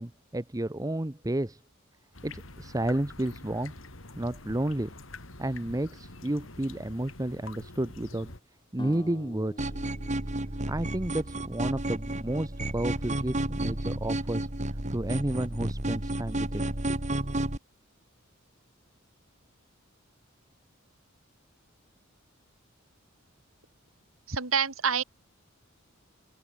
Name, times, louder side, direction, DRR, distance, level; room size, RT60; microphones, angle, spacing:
voice 1, 0.0-1.6 2.2-3.7 4.2-4.9 5.4-8.3 8.7-9.7 10.7-14.5 14.9-16.6 16.9-17.0, right 1 dB, 15° right, 0.9 m, -31 dB
sound 1, 2.1-8.4, left 2 dB, 70° left, 3.8 m, -46 dB
sound 2, 8.8-12.0, left 1 dB, 25° left, 4.9 m, -47 dB
sound 3, 9.6-17.6, right 1 dB, 35° right, 2.3 m, -32 dB
voice 2, 24.3-25.0, right 6 dB, 90° right, 2.7 m, -27 dB
open air
head